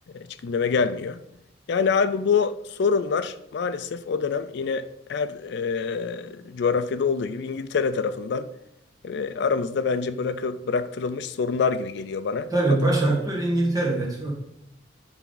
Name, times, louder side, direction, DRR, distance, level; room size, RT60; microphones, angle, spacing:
voice 1, 0.1-1.2 1.7-8.5 9.0-12.8, left 5 dB, 65° left, 0.4 m, -26 dB
voice 2, 12.5-14.3, right 2 dB, 20° right, 1.7 m, -22 dB
10.0 x 3.5 x 3.9 m
head